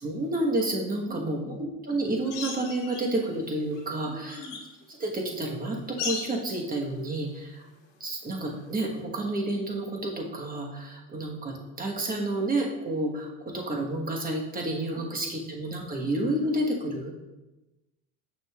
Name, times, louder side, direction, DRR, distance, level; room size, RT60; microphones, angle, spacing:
voice 1, 0.0-4.4 5.0-7.7 8.0-17.1, right 1 dB, 25° right, 0 dB, 1.2 m, -30 dB
voice 2, 1.1-1.6 4.1-4.6 14.9-15.4, left 2 dB, ahead, -1 dB, 0.5 m, -43 dB
sound 1, 2.3-3.3 3.7-4.7 6.0-6.5 8.7-8.8, left 6 dB, 90° left, 1.4 m, -36 dB
6.7 x 6.3 x 2.3 m, 1.1 s
supercardioid pair, 110°, 36 cm